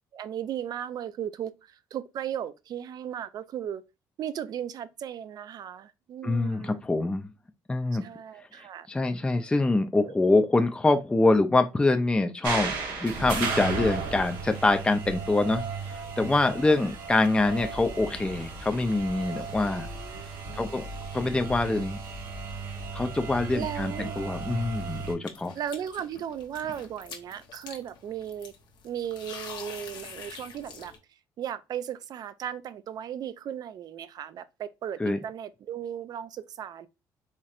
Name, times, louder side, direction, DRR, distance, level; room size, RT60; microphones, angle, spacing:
voice 1, 0.1-3.8 4.2-6.8 7.9-8.9 16.7-17.0 19.6-20.8 23.5-24.2 25.5-28.5 28.8-30.9 31.4-36.9, right 9 dB, 60° right, 0.4 m, -36 dB
voice 2, 6.2-7.3 7.7-8.0 8.9-12.7 13.0-15.6 15.9-19.9 20.5-20.9 21.1-22.0 22.9-25.5 35.0-35.2, left 2 dB, 15° left, 0.4 m, -25 dB
sound 1, 12.4-25.1, right 4 dB, 90° right, 1.0 m, -35 dB
sound 2, 25.2-31.0, left 6 dB, 75° left, 0.8 m, -45 dB
4.3 x 3.0 x 2.4 m
cardioid pair, 85°, 8 cm